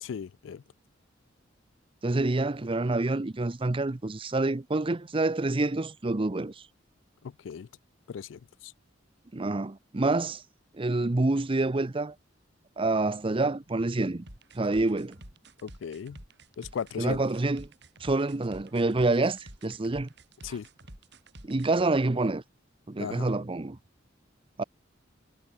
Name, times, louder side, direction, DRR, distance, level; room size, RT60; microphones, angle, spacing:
voice 1, 0.0-0.6 7.2-7.7 8.1-8.7 15.6-16.2 16.6-17.2 20.4-20.7 23.0-23.3, left 7 dB, 70° left, 0.4 m, -37 dB
voice 2, 2.0-6.5 9.3-10.4 10.7-12.1 12.8-14.3 14.5-15.2 17.0-17.7 18.0-20.1 21.4-22.4 22.9-23.8 24.6-24.7, right 2 dB, 30° right, 0.7 m, -27 dB
sound 1, 14.3-21.8, right 1 dB, 60° right, 6.0 m, -49 dB
head